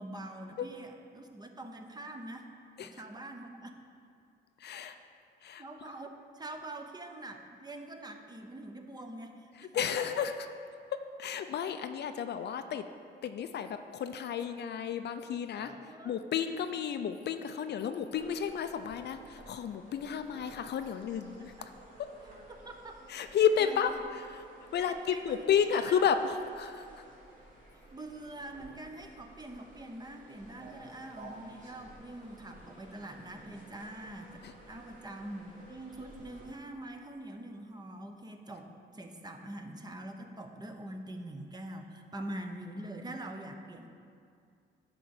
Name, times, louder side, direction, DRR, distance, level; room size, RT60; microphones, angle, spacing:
voice 1, 0.0-2.5 2.8-3.7 5.6-10.1 15.5-16.2 21.2-21.7 22.6-23.0 23.6-24.0 24.8-25.4 25.7-26.0 26.9-27.0 27.9-34.3 34.7-43.9, right 1 dB, 20° right, 4 dB, 0.8 m, -44 dB
voice 2, 4.6-5.0 5.4-5.6 9.6-10.3 11.2-12.8 13.2-15.7 16.0-21.5 23.1-24.4 24.7-26.9 34.4-34.5, left 7 dB, 60° left, 9 dB, 0.5 m, -32 dB
sound 1, 18.1-36.5, right 1 dB, 40° right, 2.3 m, -54 dB
10.0 x 3.8 x 7.1 m, 2.3 s
cardioid pair, 90°, 20 cm